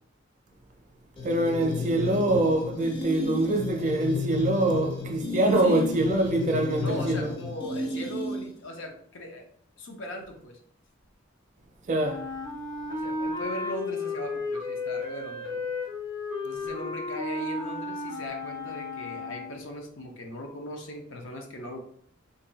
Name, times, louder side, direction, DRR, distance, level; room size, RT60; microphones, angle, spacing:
sound 1, 1.2-8.7, left 3 dB, 25° left, 0.5 m, -33 dB
voice 1, 1.2-7.3 11.9-12.2, right 1 dB, 40° right, 0.5 m, -24 dB
voice 2, 5.6-6.2 6.7-9.5 9.8-10.6 12.9-15.6 16.4-21.8, left 1 dB, 70° left, 0.6 m, -39 dB
Wind instrument woodwind instrument, 12.0-19.7, left 3 dB, 55° left, 1.1 m, -33 dB
2.6 x 2.2 x 3.9 m
head